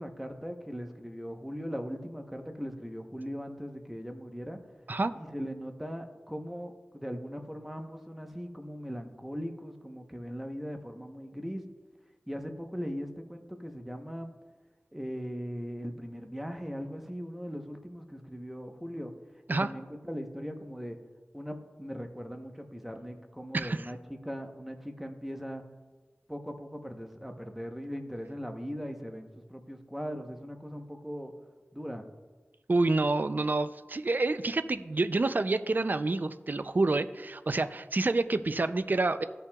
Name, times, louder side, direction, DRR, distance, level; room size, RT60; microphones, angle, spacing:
voice 1, 0.0-4.6 5.1-11.7 12.3-14.3 14.9-19.1 19.5-21.0 21.3-24.0 24.2-25.6 26.3-31.3 31.7-32.0, equal, 5° right, 4 dB, 0.9 m, -39 dB
voice 2, 23.5-23.9 32.7-39.2, right 2 dB, 45° right, 11 dB, 0.4 m, -28 dB
14.5 x 5.8 x 2.3 m, 1.3 s
wide cardioid pair, 60°, 4 cm